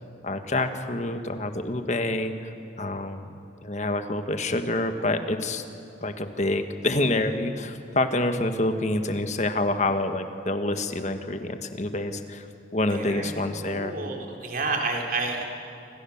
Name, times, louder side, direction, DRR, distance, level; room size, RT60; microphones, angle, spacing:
voice 1, 0.2-2.5 2.8-3.3 3.6-5.6 6.0-12.5 12.7-13.9, left 2 dB, 40° left, 7 dB, 1.6 m, -27 dB
voice 2, 12.9-13.3 13.6-15.4, right 3 dB, 50° right, 1 dB, 3.8 m, -30 dB
28.0 x 26.0 x 7.3 m, 2.7 s
head